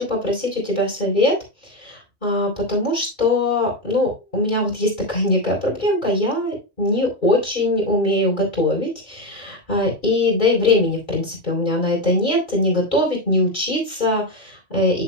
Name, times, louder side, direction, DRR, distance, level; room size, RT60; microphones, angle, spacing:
voice 1, 0.0-1.4 1.8-15.0, left 1 dB, 40° left, -2 dB, 4.2 m, -21 dB
10.5 x 7.5 x 2.2 m, 0.26 s
omnidirectional pair, 1.3 m